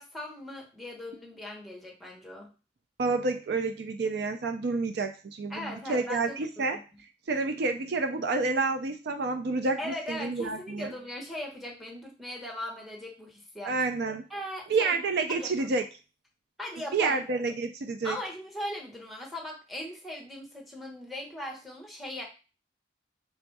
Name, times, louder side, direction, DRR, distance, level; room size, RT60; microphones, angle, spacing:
voice 1, 0.0-2.5 5.5-6.4 6.7-6.8 9.8-13.7 14.3-14.9 15.3-15.7 16.6-17.2 18.0-22.2, left 1 dB, ahead, 0 dB, 1.1 m, -39 dB
voice 2, 3.0-6.8 7.3-10.9 13.6-14.2 14.7-15.8 16.9-18.2, right 3 dB, 60° right, 6 dB, 0.4 m, -29 dB
3.4 x 2.6 x 4.6 m, 0.33 s
head